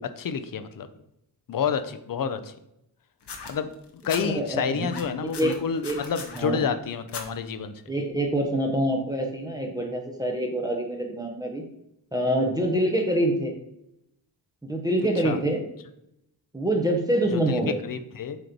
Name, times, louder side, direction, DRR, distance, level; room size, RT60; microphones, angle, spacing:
voice 1, 0.2-0.9 1.5-2.5 3.5-3.7 4.0-7.7 15.2-15.4 17.3-18.4, left 7 dB, 55° left, 10 dB, 0.6 m, -29 dB
sound 1, 3.2-4.2 4.8-6.4 7.1-7.3 8.2-8.3, left 5 dB, 85° left, 1.1 m, -38 dB
voice 2, 4.2-4.9 5.2-5.6 5.8-6.0 6.4-6.7 7.9-11.6 12.1-13.5 14.6-15.6 16.5-17.8, right 1 dB, 10° right, 1 dB, 0.8 m, -26 dB
7.9 x 3.1 x 5.1 m, 0.80 s
wide cardioid pair, 175°, 40 cm